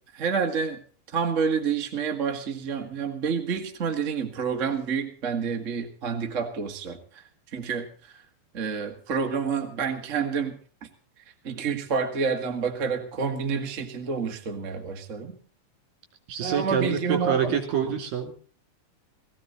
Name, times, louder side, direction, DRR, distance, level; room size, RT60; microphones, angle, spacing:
voice 1, 0.1-0.8 1.1-7.2 7.5-7.9 8.5-10.6 11.4-15.4 16.4-17.6, right 6 dB, 30° right, 4 dB, 1.4 m, -28 dB
voice 2, 16.3-18.5, right 7 dB, 65° right, 5 dB, 4.5 m, -27 dB
18.5 x 15.5 x 4.0 m, 0.41 s
omnidirectional pair, 4.3 m